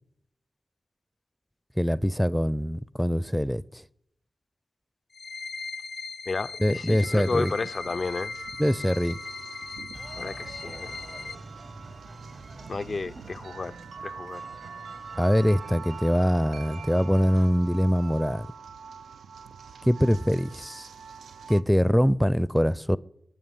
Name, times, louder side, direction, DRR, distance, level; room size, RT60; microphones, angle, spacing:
voice 1, 1.8-3.8 6.6-7.5 8.6-9.2 15.2-18.5 19.8-20.9 21.5-23.0, equal, ahead, 0.5 m, -23 dB
sound 1, 5.1-11.3, left 4 dB, 70° left, 0.8 m, -38 dB
voice 2, 6.3-8.3 10.1-11.0 12.7-13.8 14.0-14.4, left 3 dB, 50° left, 0.4 m, -32 dB
sound 2, 7.0-21.6, right 6 dB, 90° right, 0.5 m, -44 dB
sound 3, 9.9-17.5, right 2 dB, 35° right, 0.8 m, -47 dB
11.0 x 9.4 x 9.0 m
cardioid pair, 50°, 0 cm